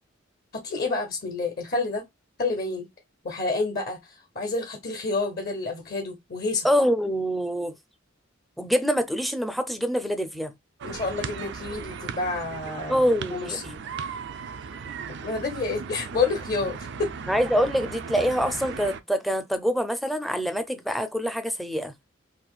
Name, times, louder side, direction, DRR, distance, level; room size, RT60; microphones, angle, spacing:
voice 1, 0.5-2.0 2.4-2.9 3.2-6.7 10.8-13.0 13.3-13.8 15.1-17.1, left 3 dB, 50° left, 0.8 m, -29 dB
voice 2, 6.6-7.7 8.6-10.5 12.9-13.6 17.3-21.9, equal, ahead, 0.5 m, -25 dB
sound 1, 10.8-19.0, right 5 dB, 60° right, 0.4 m, -37 dB
4.0 x 2.5 x 2.3 m
head